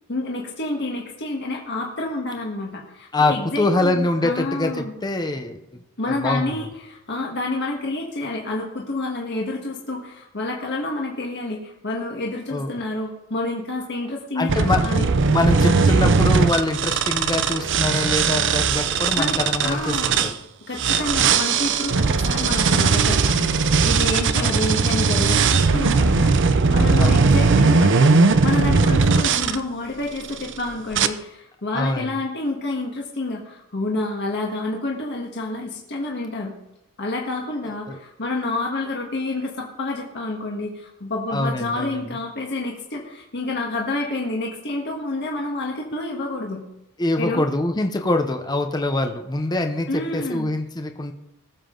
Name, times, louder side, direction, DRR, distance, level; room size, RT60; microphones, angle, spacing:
voice 1, 0.1-4.9 6.0-15.1 19.1-20.1 20.7-28.1 28.4-36.5 37.0-46.6 47.2-47.5 49.9-50.5, left 2 dB, 50° left, -1 dB, 1.6 m, -28 dB
voice 2, 3.1-5.6 6.2-6.5 12.5-12.7 14.4-15.0 15.3-20.4 24.4-24.6 27.0-27.3 31.7-32.1 37.6-38.0 41.3-42.0 47.0-51.1, left 2 dB, 20° left, 5 dB, 0.8 m, -24 dB
sound 1, 14.5-20.3 20.8-29.6 30.2-30.5 30.9-31.1, right 4 dB, 55° right, 0.6 m, -19 dB
20.0 x 7.4 x 3.9 m, 0.88 s
head